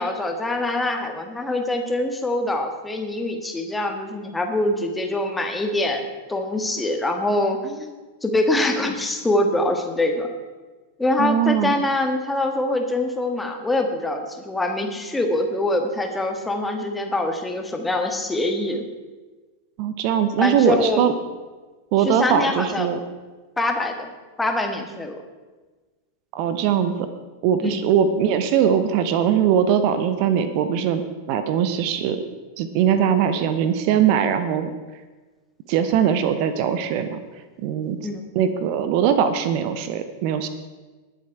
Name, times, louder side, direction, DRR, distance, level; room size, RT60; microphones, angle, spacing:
voice 1, 0.0-10.3 11.0-18.8 20.4-21.0 22.0-22.9 23.6-24.1 24.4-25.2 27.6-27.8 38.0-38.3, left 1 dB, 10° left, 4 dB, 1.6 m, -24 dB
voice 2, 11.2-11.7 19.8-21.1 21.9-23.0 26.3-27.1 27.4-32.2 32.6-34.7 35.7-37.2 37.6-38.0 38.3-40.5, right 8 dB, 45° right, 11 dB, 0.8 m, -21 dB
20.0 x 7.4 x 4.7 m, 1.3 s
figure-of-eight pair, 90°, 0 cm